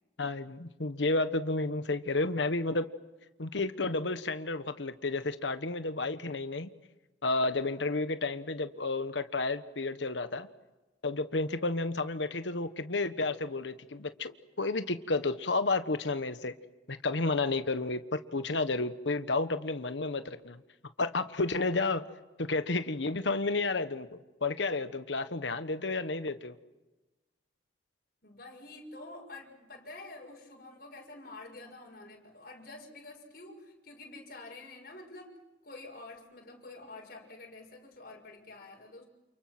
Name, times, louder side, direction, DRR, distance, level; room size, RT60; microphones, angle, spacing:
voice 1, 0.2-2.9 3.4-6.7 7.2-10.5 11.0-16.5 16.9-20.6 21.0-22.0 22.4-26.6, left 3 dB, 80° left, 10 dB, 1.3 m, -31 dB
voice 2, 28.2-35.4 35.6-39.1, left 2 dB, 50° left, 0 dB, 6.4 m, -48 dB
29.0 x 29.0 x 6.1 m, 1.1 s
head